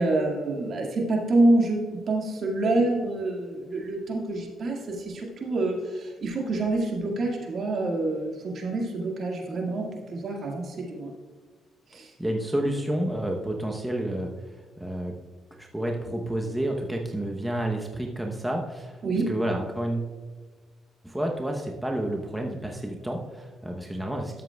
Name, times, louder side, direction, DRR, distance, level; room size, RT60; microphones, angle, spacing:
voice 1, 0.0-11.1 11.9-12.1 19.0-19.3, right 2 dB, 55° right, 0 dB, 1.9 m, -27 dB
voice 2, 12.2-14.3 14.8-15.2 15.5-20.1 21.0-24.4, right 1 dB, 10° right, 1 dB, 0.8 m, -30 dB
12.5 x 7.5 x 2.3 m, 1.4 s
cardioid pair, 90°, 0 cm